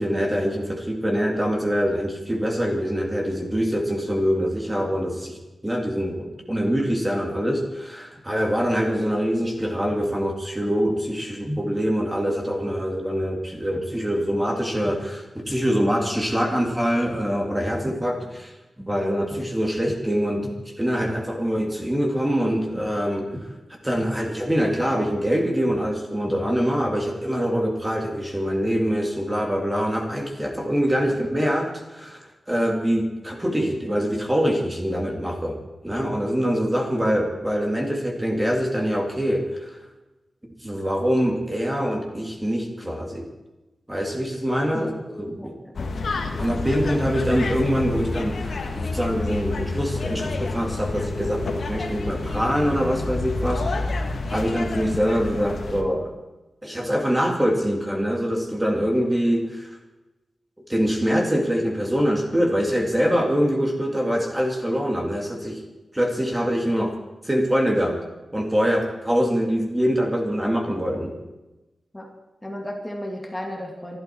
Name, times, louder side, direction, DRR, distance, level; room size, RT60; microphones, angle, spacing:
voice 1, 0.0-5.4 5.6-20.5 20.8-23.5 23.8-39.8 40.6-43.3 43.9-45.5 46.4-56.1 56.6-59.6 60.7-65.6 65.9-66.9 67.2-68.0 68.3-71.1, equal, 15° right, 1 dB, 2.5 m, -24 dB
sound 1, 45.7-55.8, left 3 dB, 70° left, 1.7 m, -29 dB
voice 2, 72.4-74.0, left 1 dB, 10° left, 1 dB, 2.4 m, -34 dB
26.0 x 12.5 x 4.6 m, 1.1 s
wide cardioid pair, 125°, 0 cm